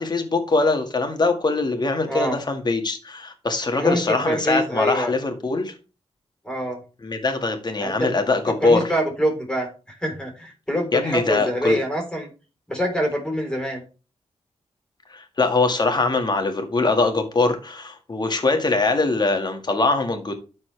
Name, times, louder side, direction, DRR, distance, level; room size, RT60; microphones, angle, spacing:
voice 1, 0.0-5.7 7.0-8.8 10.9-11.8 15.1-20.3, left 3 dB, 40° left, 1.8 m, -22 dB
voice 2, 2.1-2.4 3.8-5.1 6.4-6.8 7.8-8.1 8.6-9.7 10.0-12.3 12.7-13.8, equal, 5° left, 3.6 m, -25 dB
12.5 x 4.3 x 3.3 m
cardioid pair, 75°, 11 cm